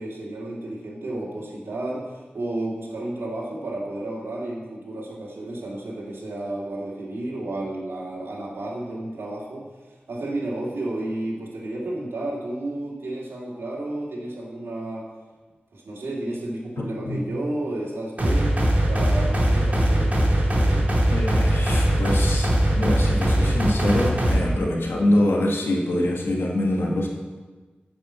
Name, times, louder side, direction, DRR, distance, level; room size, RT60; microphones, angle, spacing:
voice 1, 0.0-15.1 15.7-20.9, right 1 dB, 85° right, -5 dB, 2.4 m, -32 dB
voice 2, 16.8-17.2 21.1-27.1, left 1 dB, 85° left, -1 dB, 1.7 m, -24 dB
sound 1, 18.2-24.4, right 1 dB, 40° right, 2.5 m, -20 dB
8.8 x 6.2 x 7.5 m, 1.3 s
cardioid pair, 45°, 4 cm